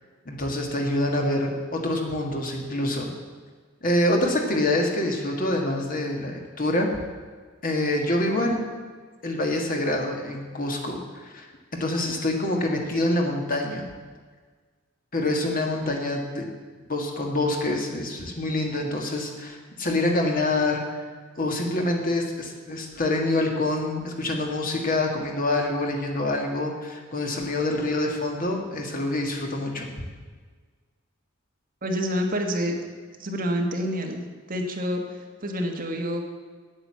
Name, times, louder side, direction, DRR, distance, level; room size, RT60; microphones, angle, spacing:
voice 1, 0.3-3.1 3.8-6.9 7.6-8.6 9.2-11.5 11.7-13.8 15.1-16.5 16.9-21.1 21.4-29.9, left 1 dB, 45° left, 1 dB, 1.8 m, -26 dB
voice 2, 31.8-32.8 33.2-36.3, equal, 45° right, 2 dB, 1.4 m, -28 dB
9.1 x 8.9 x 7.5 m, 1.5 s
head